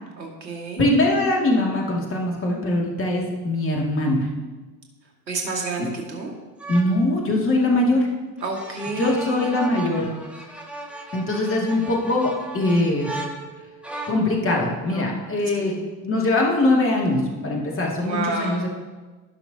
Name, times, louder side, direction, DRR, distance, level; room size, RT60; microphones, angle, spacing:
voice 1, 0.2-0.9 5.3-6.3 8.4-9.5 15.5-15.8 18.0-18.6, right 3 dB, 90° right, 0 dB, 2.2 m, -29 dB
voice 2, 0.8-4.3 6.7-8.1 9.0-10.1 11.1-13.1 14.1-15.7 16.0-18.7, left 2 dB, 25° left, -1 dB, 2.3 m, -22 dB
sound 1, 6.6-7.0 8.4-14.3 14.9-15.2, right 2 dB, ahead, 1.9 m, -37 dB
17.5 x 6.0 x 2.9 m, 1.3 s
hypercardioid pair, 80°, 50 cm